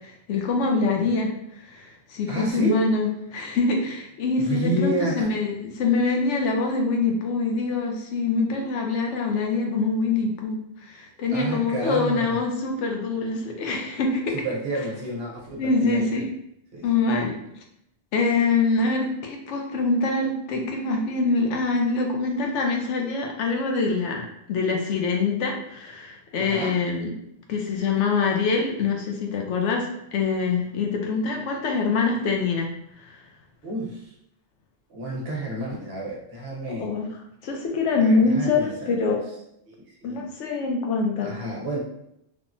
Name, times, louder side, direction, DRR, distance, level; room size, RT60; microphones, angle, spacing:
voice 1, 0.3-1.3 1.7-14.3 15.6-16.3 16.8-17.3 18.1-27.1 27.5-32.7 33.0-33.1 36.8-37.0 37.4-39.2 40.0-41.3, left 4 dB, 85° left, 2 dB, 0.9 m, -24 dB
voice 2, 2.3-2.9 4.3-5.3 11.3-12.4 14.3-16.3 16.7-16.9 26.4-26.8 33.6-34.1 34.9-36.9 38.0-38.9 39.7-40.3 41.2-41.8, right 1 dB, 60° right, -2 dB, 0.9 m, -30 dB
3.4 x 2.1 x 2.5 m, 0.76 s
omnidirectional pair, 1.2 m